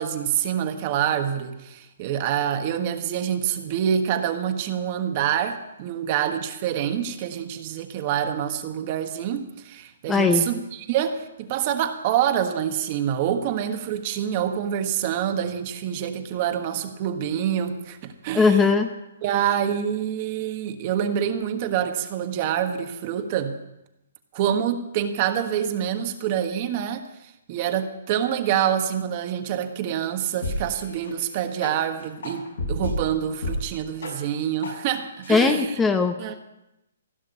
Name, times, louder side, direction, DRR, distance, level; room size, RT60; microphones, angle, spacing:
voice 1, 0.0-10.6 10.9-18.6 19.2-23.6 24.3-27.1 27.5-35.7 36.2-36.3, right 9 dB, 40° right, 7 dB, 1.4 m, -26 dB
voice 2, 10.1-10.4 18.3-18.9 35.3-36.2, left 4 dB, 10° left, 6 dB, 0.9 m, -19 dB
sound 1, 30.2-30.7 31.0-31.1 31.6-31.7 32.2-33.0 33.4-33.6 34.0-34.1 34.6-34.7 35.2-35.3, left 2 dB, 80° left, 5.9 m, -29 dB
16.0 x 6.5 x 9.7 m, 0.90 s
hypercardioid pair, 150°, 0 cm